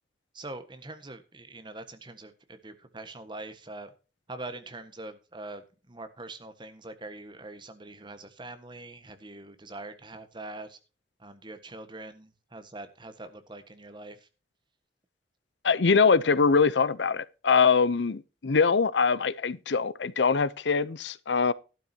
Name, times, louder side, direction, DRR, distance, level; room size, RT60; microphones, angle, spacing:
voice 1, 0.3-3.9 4.3-10.8 11.2-14.3 17.9-18.0, right 2 dB, 25° right, 1.4 m, -43 dB
voice 2, 15.6-21.5, left 5 dB, 85° left, 0.7 m, -23 dB
13.0 x 12.0 x 2.8 m
head